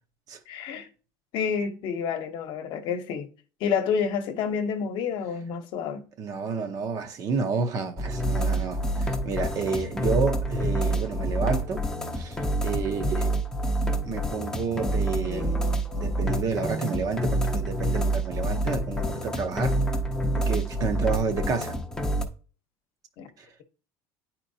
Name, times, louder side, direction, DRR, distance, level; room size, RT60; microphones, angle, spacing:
voice 1, 0.5-0.9 1.3-3.3 3.6-6.0 23.2-23.3, left 6 dB, 55° left, 0.9 m, -29 dB
voice 2, 6.2-11.9 12.1-13.3 14.0-15.6 16.0-19.8 20.3-21.8 23.4-23.5, right 5 dB, 35° right, 0.7 m, -30 dB
sound 1, 8.0-22.2, right 1 dB, 5° left, 0.6 m, -27 dB
9.6 x 4.3 x 2.7 m
cardioid pair, 160°, 10 cm